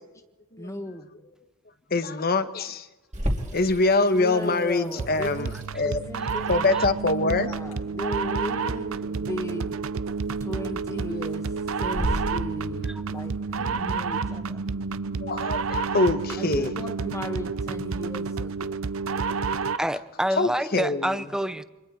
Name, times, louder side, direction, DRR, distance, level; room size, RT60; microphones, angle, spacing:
voice 1, 0.6-1.1 4.1-5.6 5.8-6.5 7.2-9.7 10.4-11.5 11.8-13.4 13.7-14.6 16.4-18.8, equal, 15° left, 1.5 m, -36 dB
voice 2, 1.9-2.9 3.5-5.5 5.7-6.0 6.5-7.5 15.2-16.7 20.4-21.2, left 3 dB, 45° left, 1.3 m, -24 dB
Water tap faucet / Sink (filling or washing), 3.1-12.1, equal, 35° right, 2.7 m, -38 dB
sound 1, 5.0-19.9, right 5 dB, 75° right, 0.6 m, -30 dB
sound 2, 6.8-6.9 7.7-7.8 8.5-8.7 10.2-10.6 10.9-11.4 11.7-12.9 13.2-13.3 13.5-13.8, equal, 65° left, 3.5 m, -33 dB
voice 3, 19.8-21.6, equal, 5° right, 0.7 m, -27 dB
29.5 x 25.5 x 4.3 m
head